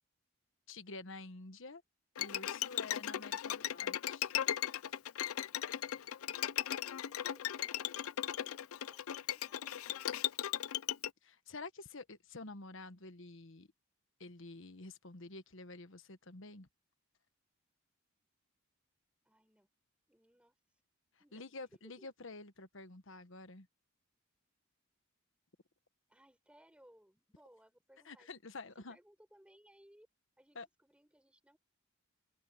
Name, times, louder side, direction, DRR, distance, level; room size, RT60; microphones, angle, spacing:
voice 1, 0.7-1.8 2.2-4.3 11.2-13.7 14.2-16.7 21.3-23.7 28.0-29.0 30.5-30.7, left 3 dB, 60° left, 1.3 m, -49 dB
Bowed string instrument, 2.2-11.1, left 11 dB, 85° left, 0.5 m, -37 dB
voice 2, 7.0-10.1 19.2-19.7 20.1-20.5 21.2-22.1 26.1-28.3 28.9-30.1 30.4-31.6, equal, 5° right, 5.0 m, -65 dB
open air
head